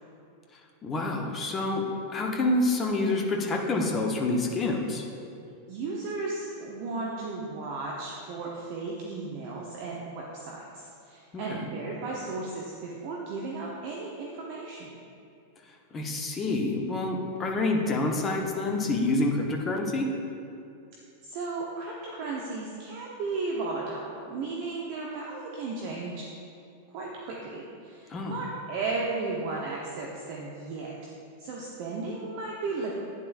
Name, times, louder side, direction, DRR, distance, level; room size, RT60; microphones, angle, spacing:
voice 1, 0.8-1.8 2.1-5.0 11.3-11.7 15.9-20.1 28.1-28.4, left 2 dB, 25° left, 1 dB, 1.1 m, -27 dB
voice 2, 5.7-15.0 21.2-26.3 26.9-30.9 31.4-32.9, right 3 dB, 45° right, -3 dB, 1.0 m, -35 dB
11.5 x 9.1 x 2.6 m, 2.5 s
figure-of-eight pair, 90°, 0 cm